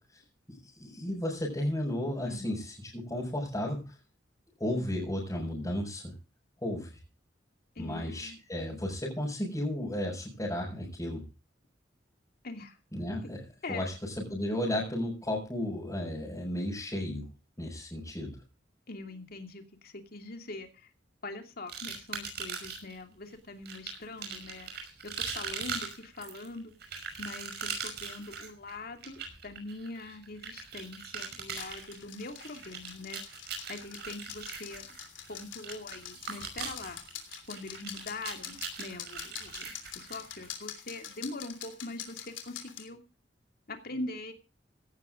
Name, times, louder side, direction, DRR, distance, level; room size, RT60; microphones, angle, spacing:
voice 1, 0.5-4.0 4.6-6.1 6.6-6.9 7.8-11.2 12.9-13.4 13.7-17.3 17.6-18.4, left 1 dB, 20° left, -6 dB, 5.6 m, -34 dB
voice 2, 2.2-2.6 7.8-8.4 12.4-12.8 13.6-13.9 18.9-20.9 21.2-24.7 25.2-26.7 27.2-33.2 33.7-34.8 35.3-37.0 37.5-43.0 43.7-44.3, left 2 dB, 55° left, 5 dB, 2.7 m, -42 dB
sound 1, 21.7-23.0 23.7-40.5, right 6 dB, 60° right, 5.6 m, -40 dB
sound 2, 31.5-42.9, left 9 dB, 85° left, 3.2 m, -45 dB
17.0 x 11.5 x 3.8 m, 0.32 s
head